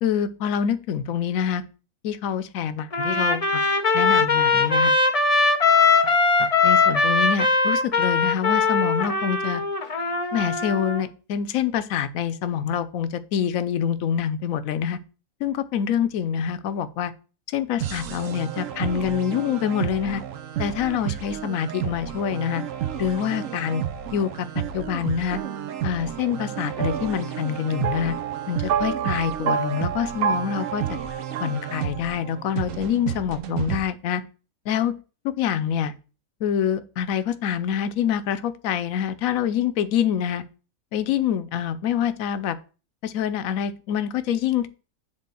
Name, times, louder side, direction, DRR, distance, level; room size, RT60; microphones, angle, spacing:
voice 1, 0.0-1.6 2.0-3.7 3.9-4.9 6.0-6.1 6.4-9.6 10.3-15.0 15.4-17.1 17.5-20.2 20.6-22.6 23.0-23.8 24.1-25.4 25.8-28.1 28.5-31.0 31.4-34.2 34.7-34.9 35.2-35.9 36.4-40.4 40.9-42.6 43.0-44.7, left 8 dB, 70° left, 12 dB, 1.0 m, -26 dB
Trumpet, 2.9-11.0, left 4 dB, 30° left, 0.7 m, -20 dB
sound 1, 17.8-33.8, right 10 dB, 65° right, 1.1 m, -32 dB
sound 2, 25.3-32.3, right 8 dB, 90° right, 1.2 m, -30 dB
7.5 x 3.6 x 6.2 m, 0.36 s
omnidirectional pair, 1.5 m